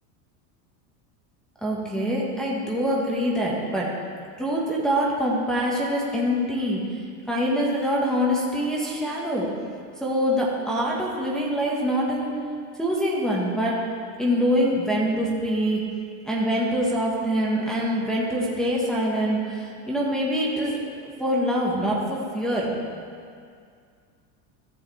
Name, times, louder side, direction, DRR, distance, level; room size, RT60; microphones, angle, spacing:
voice 1, 1.6-3.9 4.4-6.8 7.3-9.5 10.0-12.3 12.8-13.8 14.2-15.8 16.3-22.7, equal, ahead, -6 dB, 1.6 m, -24 dB
14.5 x 7.1 x 3.5 m, 2.2 s
supercardioid pair, 135°, 48 cm